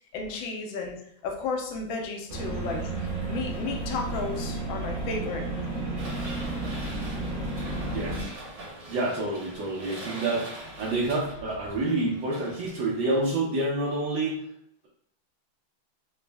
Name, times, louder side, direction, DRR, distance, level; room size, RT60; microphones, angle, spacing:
voice 1, 0.1-1.0 1.2-5.4, left 4 dB, 75° left, 2 dB, 1.4 m, -33 dB
sound 1, 2.3-8.2, right 2 dB, 35° right, 1.0 m, -32 dB
sound 2, 6.0-13.3, right 1 dB, 50° right, 1.8 m, -43 dB
voice 2, 7.8-8.2 8.9-14.4, right 2 dB, 70° right, -5 dB, 1.4 m, -28 dB
4.0 x 2.0 x 3.3 m, 0.71 s
omnidirectional pair, 2.3 m